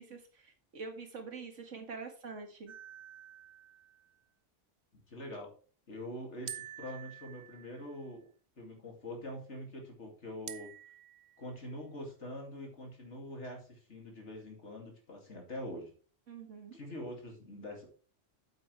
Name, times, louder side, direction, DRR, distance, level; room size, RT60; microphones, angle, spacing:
voice 1, 0.0-2.7 16.3-16.8, right 4 dB, 80° right, 5 dB, 2.0 m, -45 dB
sound 1, 2.7-4.1 6.5-8.1 10.5-11.6, right 9 dB, 45° right, 0.7 m, -48 dB
voice 2, 4.9-5.5 5.9-8.3 8.6-10.7 11.4-15.9 16.7-17.9, left 1 dB, 70° left, 1 dB, 2.9 m, -44 dB
8.6 x 8.4 x 3.3 m, 0.39 s
omnidirectional pair, 1.3 m